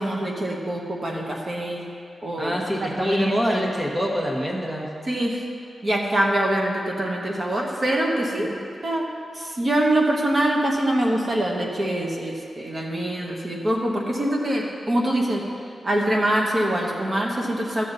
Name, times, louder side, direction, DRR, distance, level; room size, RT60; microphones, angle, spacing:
voice 1, 0.0-1.8 2.2-3.7 5.0-5.5 5.8-15.5 15.8-17.8, right 1 dB, 35° right, -1 dB, 1.2 m, -24 dB
voice 2, 2.4-4.9, equal, 15° right, -1 dB, 1.4 m, -25 dB
12.5 x 7.4 x 4.0 m, 2.4 s
wide cardioid pair, 125°, 0 cm